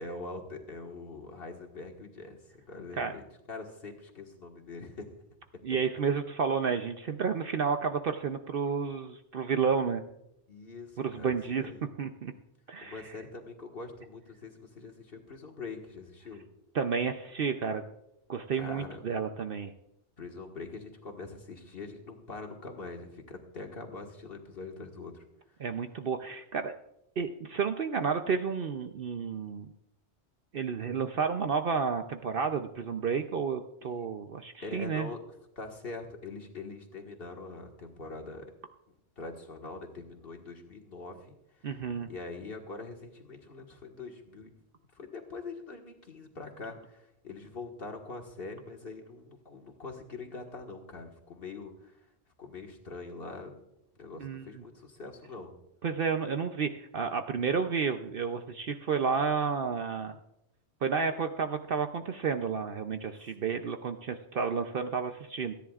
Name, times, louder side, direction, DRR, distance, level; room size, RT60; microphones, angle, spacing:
voice 1, 0.0-5.1 10.5-11.8 12.8-16.4 18.5-19.0 20.2-25.2 33.8-34.0 34.6-35.2 35.6-38.5 39.2-41.4 42.1-44.5 44.9-52.0 52.4-53.6 54.0-55.6 63.2-63.3, left 3 dB, 55° left, 2 dB, 1.9 m, -43 dB
voice 2, 5.6-10.0 11.0-11.6 12.0-12.3 12.7-13.0 16.7-17.8 18.3-19.7 25.6-26.7 27.2-29.7 30.5-35.1 41.6-42.1 54.2-54.6 55.8-60.2 60.8-65.5, right 6 dB, 55° right, 7 dB, 0.8 m, -31 dB
27.5 x 10.5 x 2.4 m, 0.82 s
omnidirectional pair, 1.2 m